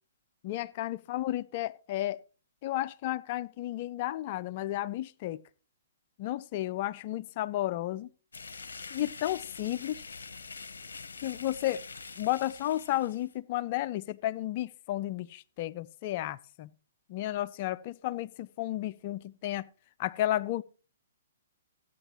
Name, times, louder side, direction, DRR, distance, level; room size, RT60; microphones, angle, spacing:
voice 1, 0.4-2.2 2.6-5.4 6.2-8.1 8.9-10.0 11.2-11.9 12.2-16.7 17.1-19.7 20.0-20.6, left 14 dB, 45° left, 0.4 m, -32 dB
sound 1, 8.3-13.3, left 4 dB, 75° left, 0.7 m, -45 dB
14.0 x 8.9 x 3.0 m
hypercardioid pair, 125°, 0 cm